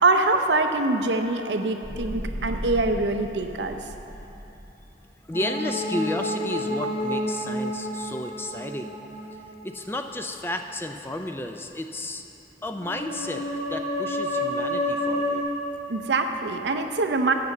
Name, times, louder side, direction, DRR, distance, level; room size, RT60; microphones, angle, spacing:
voice 1, 0.0-3.8 15.9-17.3, right 3 dB, 90° right, 5 dB, 0.7 m, -24 dB
sound 1, 1.8-5.0, equal, 60° right, 0.9 m, -36 dB
sound 2, 5.3-10.1 12.7-15.4, left 1 dB, 60° left, 2.3 m, -29 dB
voice 2, 5.3-9.0 9.6-12.2 12.6-15.4, left 1 dB, 15° left, 6 dB, 0.3 m, -32 dB
8.5 x 6.7 x 7.2 m, 3.0 s
head